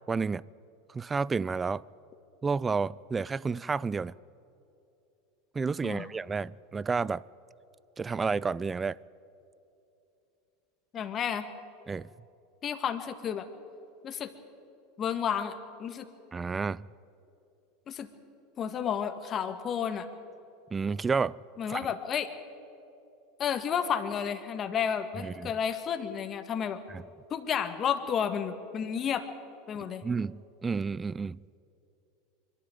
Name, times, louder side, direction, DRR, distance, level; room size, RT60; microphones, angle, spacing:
voice 1, 0.1-0.4 0.9-1.8 2.4-4.1 5.5-7.2 8.0-9.0 11.9-12.1 16.3-16.9 20.7-21.4 21.7-21.8 25.2-25.5 26.9-27.0 30.0-31.4, right 4 dB, 20° right, 0.4 m, -30 dB
voice 2, 10.9-11.5 12.6-13.5 14.0-14.3 15.0-15.5 15.8-16.1 17.9-18.1 18.6-20.1 21.6-22.3 23.4-26.8 27.3-29.2 29.7-30.0, left 8 dB, 35° left, 1.7 m, -31 dB
24.0 x 12.5 x 9.1 m
hypercardioid pair, 100°, 0 cm